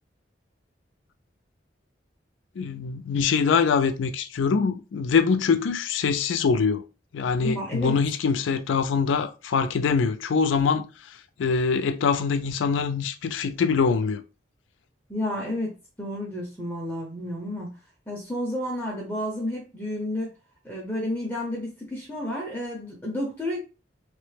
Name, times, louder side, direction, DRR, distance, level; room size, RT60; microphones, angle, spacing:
voice 1, 2.6-6.8 7.1-10.9 11.4-14.2, left 5 dB, 85° left, 0.4 m, -24 dB
voice 2, 7.4-8.0 15.1-17.7 18.1-20.3 20.6-23.6, left 1 dB, 10° left, 0.7 m, -31 dB
3.1 x 2.1 x 3.2 m
head